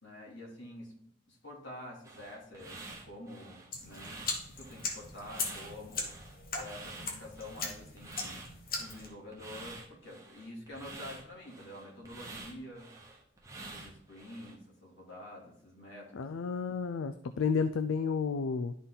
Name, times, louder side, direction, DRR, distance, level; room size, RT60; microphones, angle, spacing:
voice 1, 0.0-6.1 6.5-8.4 8.8-12.9 13.5-16.3, left 1 dB, 60° left, -3 dB, 2.8 m, -48 dB
sound 1, 2.0-14.6, right 3 dB, 15° right, 1.1 m, -49 dB
sound 2, 3.7-9.1, left 4 dB, 45° left, 1.2 m, -39 dB
voice 2, 16.1-18.8, left 5 dB, 80° left, 10 dB, 0.4 m, -31 dB
11.0 x 4.1 x 3.9 m, 0.71 s
head